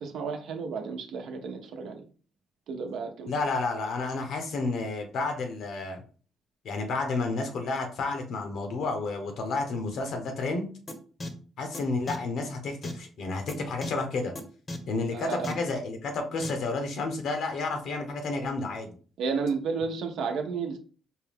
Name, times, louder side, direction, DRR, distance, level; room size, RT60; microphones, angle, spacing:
voice 1, 0.0-2.0 2.7-3.3 15.1-15.6 19.2-20.8, right 5 dB, 75° right, 5 dB, 0.8 m, -32 dB
voice 2, 3.3-6.0 6.6-10.7 11.6-14.3 14.9-19.0, left 3 dB, 70° left, 5 dB, 1.0 m, -31 dB
sound 1, 10.9-11.0 11.2-11.3 11.7-11.8 12.1-12.2 12.8-12.9 13.5-13.6 13.8-13.9 14.4-14.5 14.7-14.8 15.4-15.5 16.4-16.5, left 2 dB, 35° left, 0.8 m, -34 dB
4.5 x 2.3 x 3.5 m, 0.40 s
cardioid pair, 90°, 0 cm